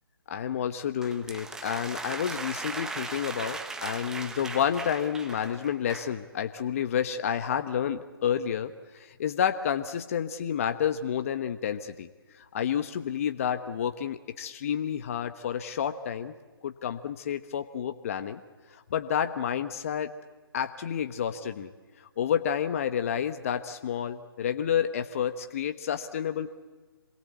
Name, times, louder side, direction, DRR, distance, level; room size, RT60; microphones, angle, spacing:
voice 1, 0.3-12.1 12.4-16.3 16.6-18.4 18.7-20.1 20.5-21.7 22.2-26.5, left 8 dB, 35° left, 9 dB, 1.1 m, -30 dB
sound 1, 1.0-6.2, right 3 dB, 5° right, 1.0 m, -38 dB
27.0 x 22.0 x 8.3 m, 1.3 s
figure-of-eight pair, 155°, 13 cm